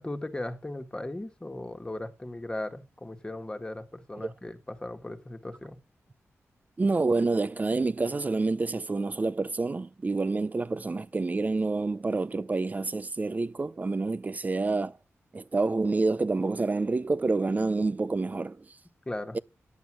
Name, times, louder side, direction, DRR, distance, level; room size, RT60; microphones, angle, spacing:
voice 1, 0.0-5.8 19.0-19.4, left 1 dB, 15° left, 1.7 m, -37 dB
voice 2, 6.8-14.9 15.3-18.7 19.3-19.4, right 3 dB, 35° right, 0.7 m, -28 dB
10.5 x 8.3 x 6.1 m
cardioid pair, 80°, 5 cm